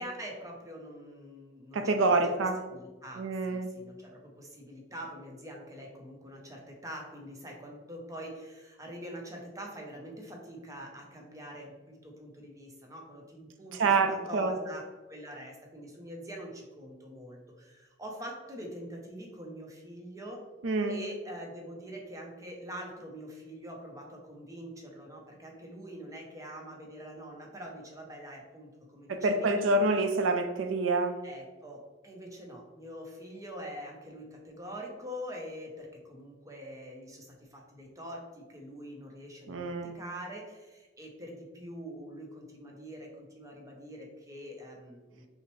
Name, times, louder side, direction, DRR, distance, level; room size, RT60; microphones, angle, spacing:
voice 1, 0.0-1.8 2.1-2.2 2.7-20.4 20.9-29.8 31.2-45.3, equal, 15° right, 0 dB, 0.7 m, -44 dB
voice 2, 1.7-2.6 3.2-3.7 13.7-14.6 20.6-21.0 29.1-31.1 39.5-40.0, right 3 dB, 85° right, 7 dB, 0.5 m, -27 dB
5.7 x 2.1 x 3.1 m, 1.2 s
head